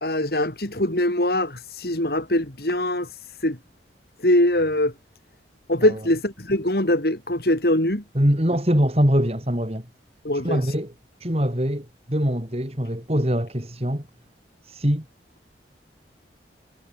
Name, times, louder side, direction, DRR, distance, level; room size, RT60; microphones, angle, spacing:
voice 1, 0.0-3.6 4.2-4.9 5.7-8.0 10.2-10.7, left 1 dB, 55° left, 3.2 m, -22 dB
voice 2, 8.1-9.9 10.4-10.9 11.2-14.1 14.6-15.1, equal, 35° right, 4.2 m, -23 dB
head